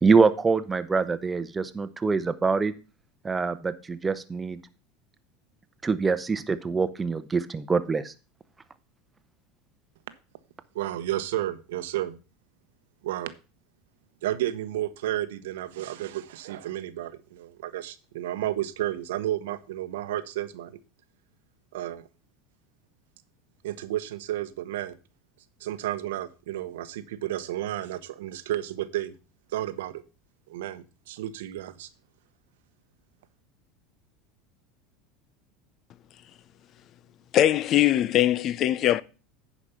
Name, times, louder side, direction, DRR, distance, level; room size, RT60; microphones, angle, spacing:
voice 1, 0.0-2.7 3.2-4.6 5.8-8.1, right 4 dB, 15° right, 0.9 m, -24 dB
voice 2, 10.7-12.2 13.0-13.3 14.2-20.8 21.7-22.0 23.6-25.0 25.6-29.1 29.5-30.0 30.5-31.9, right 13 dB, 85° right, 0.9 m, -32 dB
voice 3, 37.3-39.0, left 12 dB, 45° left, 0.5 m, -21 dB
10.0 x 5.1 x 5.6 m
supercardioid pair, 120°, 0 cm